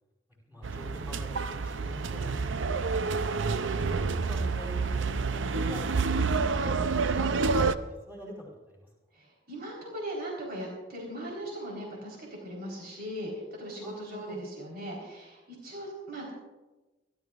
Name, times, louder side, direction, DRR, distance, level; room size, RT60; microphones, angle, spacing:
voice 1, 0.5-3.6 4.1-6.1 6.6-6.8 7.0-7.5 8.1-8.9 13.8-14.4, equal, 10° right, -5 dB, 5.0 m, -46 dB
sound 1, 0.6-7.7, right 4 dB, 80° right, 0.6 m, -28 dB
voice 2, 9.1-16.3, equal, 55° right, -2 dB, 4.1 m, -39 dB
29.5 x 12.5 x 2.5 m, 1.1 s
head